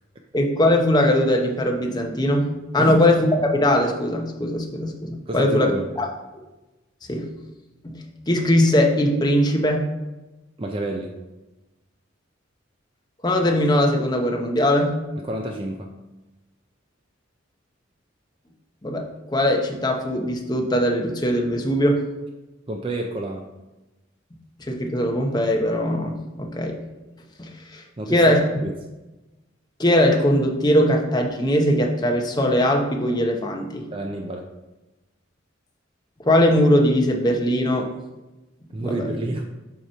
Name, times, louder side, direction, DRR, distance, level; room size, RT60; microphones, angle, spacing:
voice 1, 0.3-5.7 6.0-6.1 6.3-6.4 7.1-7.3 7.8-9.8 13.2-15.0 18.8-22.0 24.7-26.8 27.4-28.4 29.8-33.9 36.3-37.9 38.8-39.1, left 1 dB, 20° left, 1 dB, 0.8 m, -20 dB
voice 2, 5.3-5.9 10.6-11.1 15.3-15.9 22.7-23.4 28.0-28.4 28.6-28.7 33.9-34.5 38.7-39.4, right 2 dB, 25° right, 2 dB, 0.4 m, -29 dB
8.0 x 3.0 x 5.5 m, 1.1 s
head